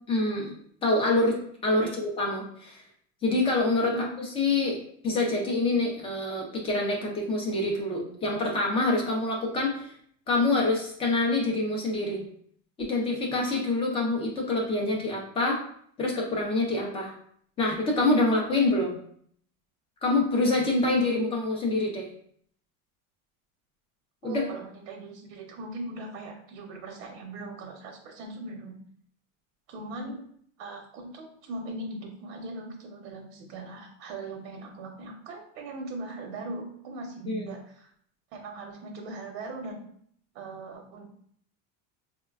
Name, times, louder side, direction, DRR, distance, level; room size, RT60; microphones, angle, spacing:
voice 1, 0.1-0.5 0.8-2.8 3.2-4.1 4.4-4.8 5.0-9.9 10.3-12.2 12.8-15.6 16.0-17.1 17.6-19.0 20.0-22.1 24.2-24.4 37.3-37.5, left 2 dB, 15° left, 0 dB, 0.3 m, -26 dB
voice 2, 24.2-28.8 29.7-30.3 30.6-37.9 38.3-39.8 40.3-41.1, right 2 dB, 85° right, 2 dB, 0.8 m, -39 dB
4.6 x 2.1 x 2.3 m, 0.63 s
supercardioid pair, 160°, 39 cm